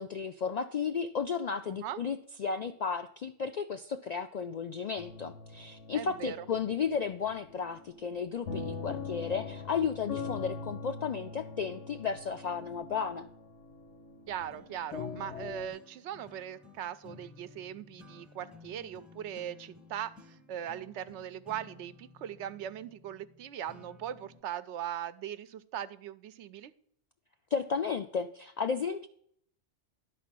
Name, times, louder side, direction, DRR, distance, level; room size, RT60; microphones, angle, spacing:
voice 1, 0.0-13.3 27.5-29.1, left 6 dB, 65° left, 8 dB, 0.4 m, -33 dB
voice 2, 1.7-2.0 5.9-6.5 14.3-26.7, right 10 dB, 80° right, 14 dB, 0.9 m, -40 dB
sound 1, 5.0-15.7, left 4 dB, 85° left, 1.3 m, -42 dB
sound 2, 14.4-24.4, left 4 dB, ahead, 0.5 m, -56 dB
11.0 x 4.2 x 7.4 m, 0.66 s
omnidirectional pair, 1.2 m